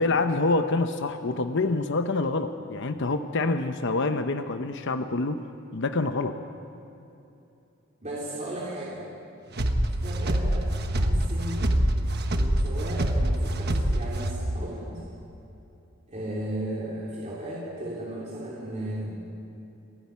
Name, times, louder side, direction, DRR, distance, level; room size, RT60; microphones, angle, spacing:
voice 1, 0.0-5.4 5.7-6.4, left 3 dB, 60° left, 8 dB, 0.9 m, -26 dB
voice 2, 8.0-9.0 10.0-11.7 12.3-15.0 16.1-19.2, right 1 dB, 35° right, -6 dB, 3.5 m, -35 dB
sound 1, 9.5-14.6, right 1 dB, 50° right, 1.3 m, -25 dB
29.0 x 10.0 x 9.5 m, 2.8 s
head